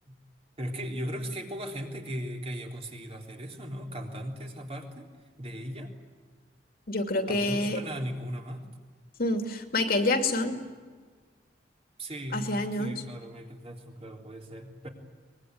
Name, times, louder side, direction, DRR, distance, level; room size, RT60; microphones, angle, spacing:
voice 1, 0.6-5.1 5.4-5.9 7.3-8.7 12.0-14.9, equal, 35° right, 1 dB, 3.6 m, -37 dB
voice 2, 6.9-7.8 9.2-10.6 12.3-12.9, left 2 dB, 55° left, 5 dB, 2.5 m, -27 dB
23.5 x 22.0 x 9.5 m, 1.5 s
head